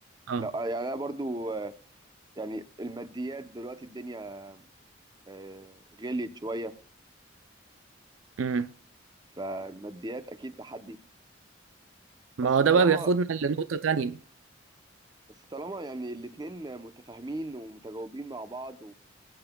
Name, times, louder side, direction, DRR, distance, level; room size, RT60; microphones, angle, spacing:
voice 1, 0.4-1.7 2.4-4.6 5.3-6.7 9.4-11.0 12.7-13.1 15.5-18.9, right 2 dB, 20° right, 0.7 m, -36 dB
voice 2, 12.4-14.2, right 5 dB, 90° right, 0.5 m, -24 dB
22.0 x 8.9 x 2.3 m
head